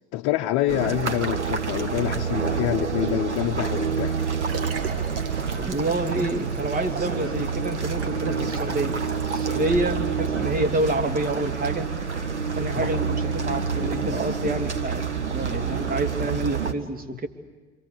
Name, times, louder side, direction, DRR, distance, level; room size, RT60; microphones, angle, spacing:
voice 1, 0.1-4.2 12.7-12.9, left 15 dB, 55° left, 0.8 m, -26 dB
sound 1, 0.7-16.7, right 6 dB, 90° right, 1.4 m, -27 dB
Liquid, 3.8-10.1 10.7-10.8, right 4 dB, 40° right, 2.8 m, -40 dB
voice 2, 5.6-9.0 9.3-11.9 12.6-17.3, right 2 dB, 25° right, 2.6 m, -28 dB
26.5 x 26.0 x 8.3 m
figure-of-eight pair, 65°, 34 cm